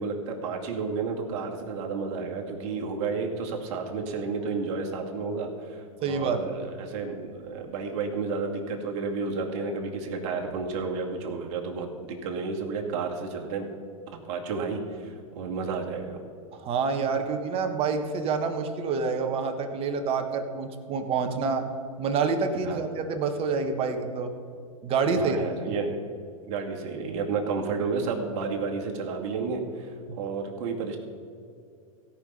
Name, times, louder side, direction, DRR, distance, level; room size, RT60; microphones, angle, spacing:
voice 1, 0.0-13.7 14.3-16.2 22.6-22.9 25.2-26.0 26.5-31.0, right 4 dB, 55° right, 1 dB, 2.1 m, -31 dB
voice 2, 6.0-6.5 16.5-21.6 22.0-24.3 24.8-25.7 30.1-30.2, right 5 dB, 30° right, 6 dB, 1.3 m, -27 dB
17.0 x 5.7 x 5.4 m, 2.4 s
hypercardioid pair, 120°, 18 cm